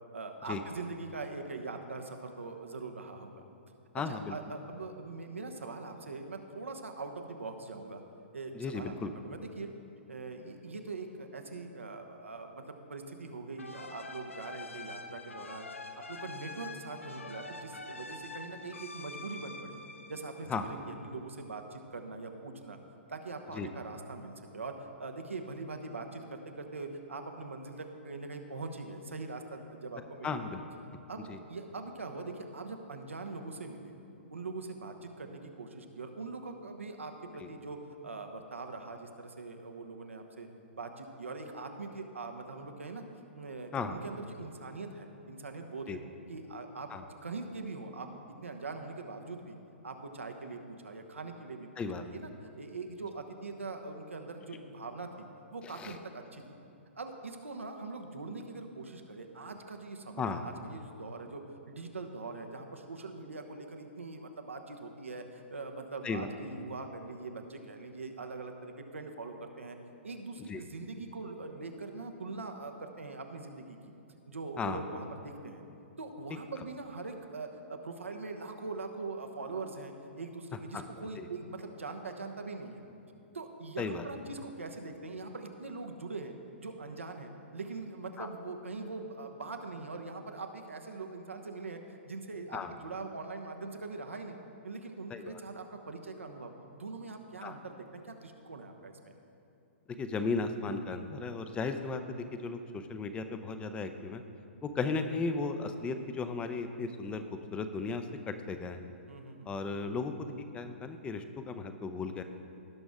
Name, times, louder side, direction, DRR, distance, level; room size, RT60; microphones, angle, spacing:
voice 1, 0.1-3.3 4.1-8.0 8.3-9.7 10.1-15.7 15.9-19.8 20.1-22.8 23.1-30.3 31.1-33.9 34.3-40.5 40.7-43.0 43.3-46.0 46.3-49.6 49.8-51.7 52.0-52.3 52.6-56.6 56.9-69.8 70.0-73.8 74.3-75.6 76.0-82.8 83.3-94.4 94.6-99.1 109.1-109.5, right 3 dB, 80° right, 4 dB, 1.1 m, -42 dB
voice 2, 3.9-4.4 8.5-9.1 20.5-20.7 23.5-23.7 30.2-30.6 31.3-31.4 37.4-37.5 43.7-44.0 45.9-46.0 46.9-47.0 51.8-52.0 55.7-55.9 60.2-60.4 66.0-66.3 70.5-70.6 74.6-74.8 80.7-80.8 81.2-81.3 83.8-84.1 88.2-88.3 92.5-92.7 95.1-95.4 97.4-97.6 100.0-104.2 104.6-108.9 109.5-112.2, left 4 dB, 15° left, 8 dB, 0.6 m, -35 dB
sound 1, 13.6-21.0, left 3 dB, 85° left, 0.7 m, -45 dB
17.5 x 6.2 x 3.6 m, 2.7 s
figure-of-eight pair, 120°, 7 cm